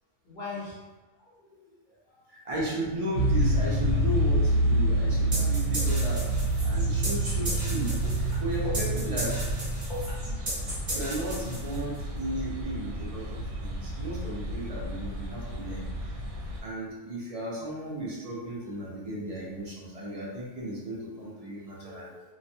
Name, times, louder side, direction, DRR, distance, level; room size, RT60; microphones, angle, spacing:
voice 1, 0.2-0.8 1.2-2.2 8.0-8.7 9.9-10.2 21.8-22.2, left 2 dB, 45° left, -10 dB, 0.7 m, -41 dB
voice 2, 2.3-6.3 6.6-9.4 10.9-15.8 16.6-22.1, right 1 dB, 45° right, -5 dB, 0.4 m, -35 dB
sound 1, 3.1-16.6, right 1 dB, 75° right, 0.9 m, -28 dB
sound 2, 5.3-12.0, right 1 dB, 30° right, 0.8 m, -36 dB
2.3 x 2.2 x 2.6 m, 1.2 s
omnidirectional pair, 1.3 m